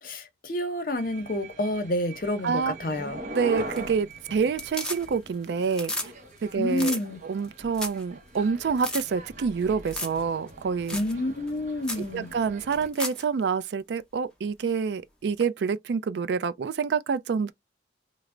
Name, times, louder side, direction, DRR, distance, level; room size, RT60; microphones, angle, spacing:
voice 1, 0.0-3.2 6.6-7.2 10.9-12.3, left 1 dB, 50° left, 0.7 m, -29 dB
sound 1, 1.0-12.9, right 1 dB, 45° right, 0.7 m, -42 dB
voice 2, 2.4-2.7 3.3-6.1 6.4-11.0 12.0-17.5, right 5 dB, 75° right, 0.3 m, -27 dB
sound 2, 3.6-4.1 4.4-5.3 5.6-6.1 6.4-6.5 6.7-7.0 7.4-7.5 7.7-8.0 8.3-8.4 8.8-9.0 9.9-10.2 10.5-10.6 10.9-11.1 11.5-11.6 11.8-12.1 12.7-13.2 15.4-15.5, left 1 dB, 5° left, 0.7 m, -33 dB
3.2 x 2.0 x 3.6 m
head